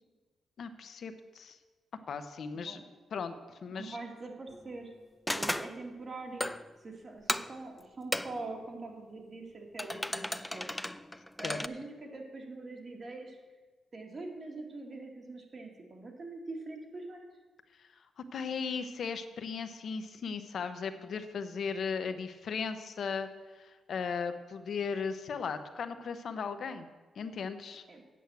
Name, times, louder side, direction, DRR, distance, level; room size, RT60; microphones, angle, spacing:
voice 1, 0.6-1.6 2.1-2.8 3.1-4.0 11.4-11.6 17.8-17.9 18.2-23.3 23.5-26.9 27.2-27.8, left 5 dB, 65° left, 9 dB, 0.8 m, -37 dB
voice 2, 3.7-4.9 5.3-6.5 6.8-10.7 11.4-13.4 13.9-17.3 27.9-28.0, right 2 dB, 45° right, 1 dB, 2.0 m, -43 dB
sound 1, 4.5-4.8 5.3-5.8 6.4-6.7 7.3-7.6 8.1-8.5 9.8-11.7, left 1 dB, 5° left, 0.3 m, -35 dB
8.5 x 6.2 x 8.2 m, 1.3 s
cardioid pair, 90°, 0 cm